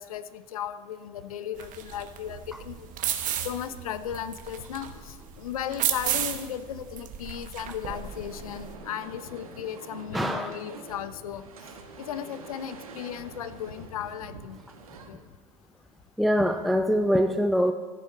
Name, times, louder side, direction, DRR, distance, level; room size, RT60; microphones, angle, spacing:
voice 1, 0.0-2.9 3.4-11.4 12.0-14.6 15.1-15.2, left 9 dB, 80° left, 13 dB, 0.6 m, -36 dB
sound 1, 1.6-8.7, right 10 dB, 45° right, 1.1 m, -33 dB
sound 2, 7.9-15.1, right 4 dB, 85° right, 1.2 m, -46 dB
voice 2, 10.1-10.5 16.2-17.7, equal, ahead, 7 dB, 0.4 m, -23 dB
14.5 x 6.6 x 4.1 m, 1.5 s
hypercardioid pair, 75°, 18 cm